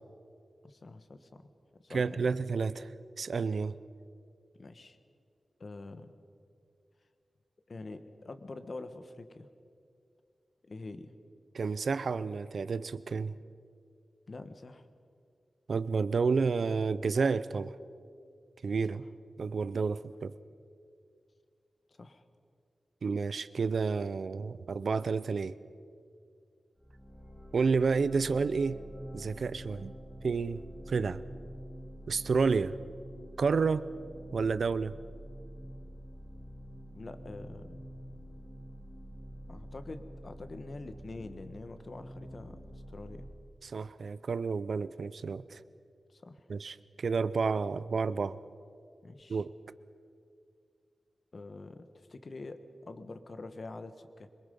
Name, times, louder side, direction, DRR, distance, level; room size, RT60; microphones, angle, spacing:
voice 1, 0.6-2.3 4.5-5.0 5.6-6.2 7.7-9.5 10.6-11.1 14.3-14.9 18.9-19.1 21.9-22.2 36.9-37.8 39.5-42.6 42.9-43.3 46.1-46.4 49.0-49.4 51.3-52.6 52.8-54.3, left 3 dB, 50° left, 9 dB, 1.3 m, -45 dB
voice 2, 1.9-2.9 3.2-3.7 11.5-13.4 15.7-17.7 18.6-19.0 19.4-20.3 23.0-25.6 27.5-28.8 29.1-30.0 30.2-31.2 32.1-32.8 33.4-33.8 34.3-35.0 43.6-45.6 46.5-48.4 49.3-49.5, right 5 dB, 70° right, 16 dB, 0.6 m, -30 dB
sound 1, 26.8-43.2, equal, 5° right, 5.7 m, -47 dB
26.0 x 22.5 x 5.4 m, 2.4 s
wide cardioid pair, 100°, 0 cm